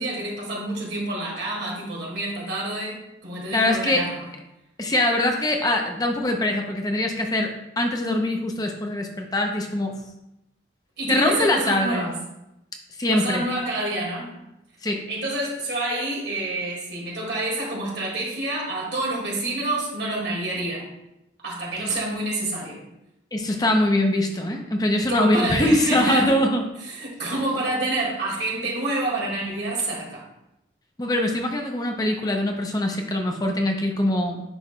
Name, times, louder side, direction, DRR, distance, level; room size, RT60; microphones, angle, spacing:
voice 1, 0.0-3.0 3.2-4.3 11.0-12.2 13.1-14.4 15.1-20.8 21.4-22.8 25.1-26.4 26.8-30.2, right 2 dB, 65° right, -4 dB, 2.0 m, -28 dB
voice 2, 3.5-4.0 4.8-9.9 11.1-12.1 13.0-13.5 14.8-15.0 23.3-26.6 31.0-34.4, left 1 dB, 20° left, 3 dB, 0.6 m, -23 dB
9.6 x 4.6 x 2.2 m, 0.88 s
head